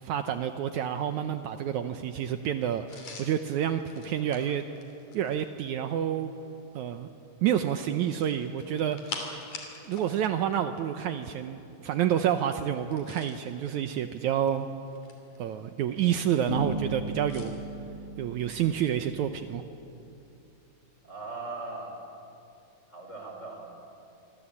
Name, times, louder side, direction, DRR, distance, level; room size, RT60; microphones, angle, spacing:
voice 1, 0.0-4.6 5.1-6.3 6.8-7.1 7.4-9.3 9.9-14.7 15.4-17.6 18.2-19.6, right 10 dB, 75° right, 8 dB, 2.1 m, -29 dB
sound 1, 2.9-5.5 8.0-10.1 10.4-10.6 12.8-13.5 14.3-15.4 17.3-17.5, left 4 dB, 65° left, 4.6 m, -44 dB
sound 2, 16.5-19.5, equal, 40° left, 1.0 m, -36 dB
voice 2, 21.0-22.0 22.9-23.7, right 3 dB, 20° left, 2 dB, 5.0 m, -39 dB
27.0 x 24.5 x 8.6 m, 2.7 s
omnidirectional pair, 3.8 m